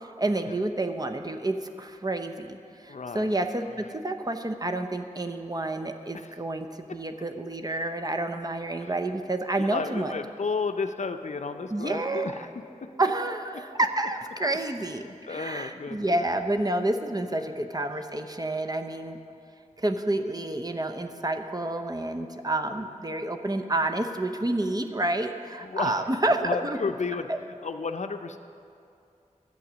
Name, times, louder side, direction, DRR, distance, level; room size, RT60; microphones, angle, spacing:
voice 1, 0.2-10.1 11.7-12.3 13.0-19.2 19.8-26.8 27.3-27.4, right 2 dB, 30° right, 6 dB, 0.8 m, -29 dB
voice 2, 2.9-3.4 6.1-6.3 8.8-8.9 9.6-12.5 15.0-16.2 17.4-17.7 25.6-26.1 26.4-28.4, left 4 dB, 60° left, 8 dB, 0.6 m, -33 dB
11.5 x 7.9 x 6.2 m, 2.5 s
cardioid pair, 40°, 13 cm